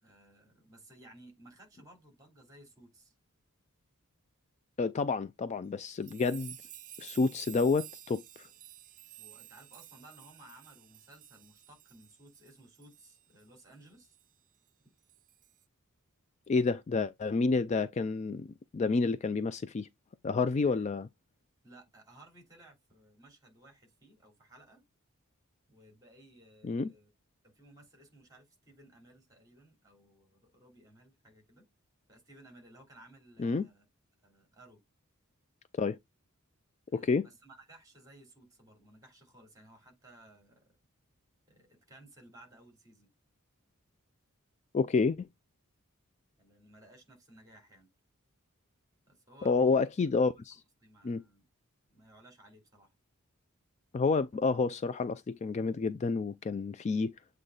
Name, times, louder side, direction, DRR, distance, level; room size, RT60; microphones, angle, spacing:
voice 1, 0.0-3.1 9.2-14.2 20.6-20.8 21.6-24.8 25.7-27.1 27.4-31.6 32.1-33.8 34.2-34.8 36.9-40.8 41.5-43.1 46.4-47.9 49.1-49.8 50.5-51.5 51.9-53.0, right 1 dB, 15° right, 2.9 m, -58 dB
voice 2, 4.8-6.6 7.0-8.5 16.5-18.5 18.7-19.9 20.2-21.1 26.6-26.9 33.4-33.6 35.8-36.0 36.9-37.3 44.7-45.3 49.4-50.6 51.0-51.2 53.9-57.2, left 4 dB, 30° left, 0.3 m, -29 dB
sound 1, 5.9-13.7 14.1-14.2 15.1-15.6, right 13 dB, 35° right, 0.5 m, -52 dB
7.9 x 3.2 x 3.8 m
head